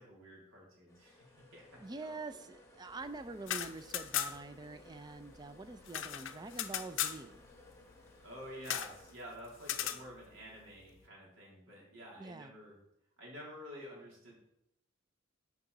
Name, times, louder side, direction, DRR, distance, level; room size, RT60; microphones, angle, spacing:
voice 1, 0.0-1.6 2.0-2.1 8.2-12.8 13.2-14.3, equal, 70° right, -3 dB, 3.2 m, -50 dB
sound 1, 0.9-9.1, left 2 dB, 15° left, 1.2 m, -59 dB
voice 2, 1.8-7.4 12.2-12.5, right 3 dB, 20° right, 11 dB, 0.4 m, -46 dB
sound 2, 3.3-4.6 4.8-4.9 5.2-7.2 8.6-9.0 9.6-10.0, left 10 dB, 65° left, 0.5 m, -37 dB
11.5 x 4.8 x 4.0 m, 0.84 s
head